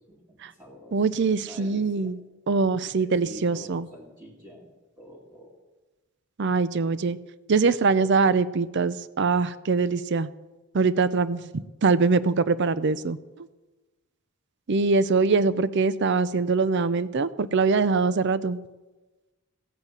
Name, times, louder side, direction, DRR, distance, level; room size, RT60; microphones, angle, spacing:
voice 1, 0.1-1.0 1.3-2.1 2.8-4.7 5.0-5.6 15.2-15.3, equal, 15° right, -6 dB, 2.3 m, -47 dB
voice 2, 0.9-2.2 2.5-3.9 6.4-7.2 7.5-10.3 10.7-13.2 14.7-18.6, right 4 dB, 55° right, 15 dB, 0.5 m, -23 dB
16.0 x 8.1 x 8.2 m, 1.2 s
head